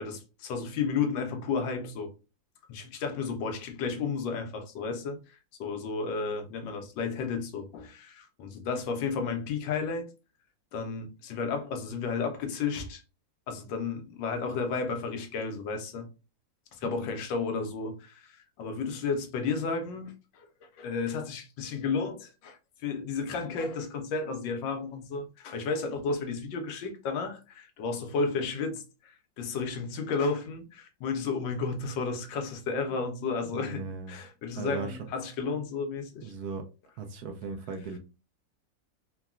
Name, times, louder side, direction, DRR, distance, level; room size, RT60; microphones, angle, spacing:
voice 1, 0.0-2.1 2.7-10.1 10.7-13.0 13.5-16.1 16.7-20.5 20.8-36.3, left 4 dB, 80° left, 1.3 m, -33 dB
voice 2, 33.5-34.2 34.6-35.0 36.2-36.6 37.0-38.0, right 4 dB, 70° right, 0.9 m, -37 dB
3.7 x 2.2 x 2.3 m
omnidirectional pair, 2.1 m